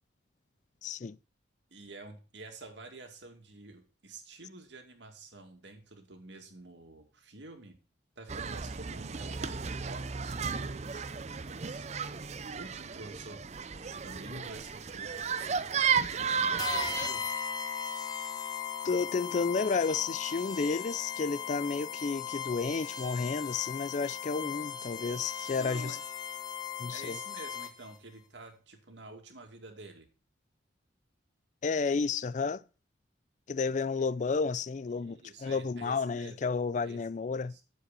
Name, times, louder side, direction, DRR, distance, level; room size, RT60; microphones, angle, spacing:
voice 1, 0.8-1.2 18.8-26.0 26.8-27.2 31.6-32.6 33.5-37.5, left 4 dB, 40° left, 0.4 m, -31 dB
voice 2, 1.7-7.8 8.2-12.3 12.5-13.4 14.0-17.2 25.5-26.0 26.9-30.1 34.0-34.1 34.9-36.4 36.8-37.0 37.5-37.6, right 3 dB, 70° right, 2.4 m, -49 dB
sound 1, 8.3-17.1, right 6 dB, 35° right, 0.5 m, -34 dB
sound 2, 16.6-28.0, left 7 dB, 20° left, 1.1 m, -38 dB
9.7 x 7.6 x 4.1 m
head